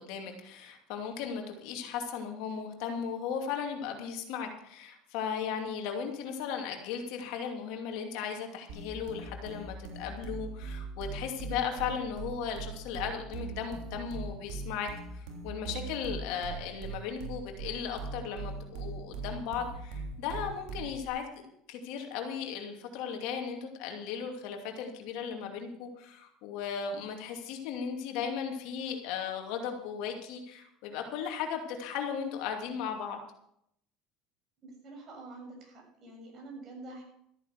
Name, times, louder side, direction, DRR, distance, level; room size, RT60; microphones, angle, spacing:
voice 1, 0.0-21.2 21.7-33.2, left 7 dB, 75° left, 4 dB, 2.6 m, -36 dB
sound 1, 8.7-21.1, right 4 dB, 70° right, 3.5 m, -40 dB
voice 2, 34.6-37.0, right 2 dB, 45° right, 0 dB, 6.8 m, -47 dB
14.0 x 9.1 x 6.5 m, 0.73 s
supercardioid pair, 110°, 0 cm